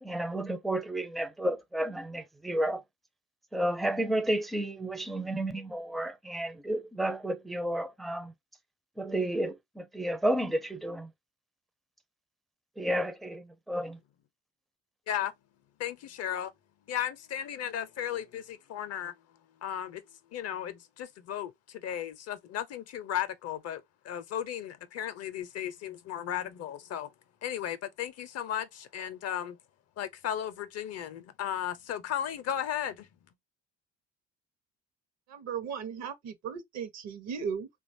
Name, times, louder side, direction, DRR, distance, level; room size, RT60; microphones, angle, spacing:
voice 1, 0.0-2.8 3.5-8.3 9.0-11.1 12.8-14.0, right 1 dB, ahead, 0.4 m, -31 dB
voice 2, 15.8-16.5 16.9-19.1 19.6-20.0 20.3-27.1 27.4-29.6 30.0-33.1, left 10 dB, 50° left, 0.6 m, -35 dB
voice 3, 35.3-37.7, right 7 dB, 55° right, 0.7 m, -36 dB
2.9 x 2.3 x 2.6 m
hypercardioid pair, 55°, 32 cm